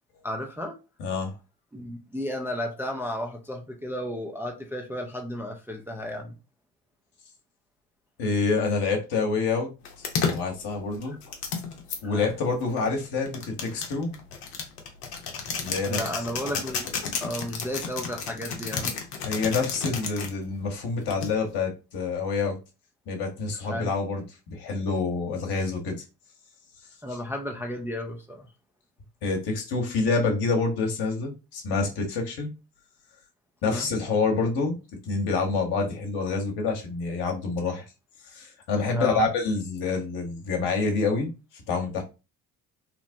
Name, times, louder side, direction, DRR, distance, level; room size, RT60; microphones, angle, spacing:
voice 1, 0.2-0.8 1.7-6.4 12.0-12.3 15.9-16.9 17.2-18.9 23.6-23.9 27.0-28.5 33.6-33.9 38.9-39.3, equal, 5° right, 0.4 m, -33 dB
voice 2, 1.0-1.3 8.2-9.7 10.0-11.2 12.0-14.1 15.6-16.0 19.2-22.6 23.1-26.0 29.2-32.5 33.6-34.8 35.0-37.8 38.3-42.0, left 4 dB, 55° left, 1.1 m, -27 dB
sound 1, 9.8-12.0 12.8-20.3 21.1-21.6, left 5 dB, 80° left, 0.8 m, -32 dB
3.0 x 2.0 x 2.6 m
hypercardioid pair, 55°, 47 cm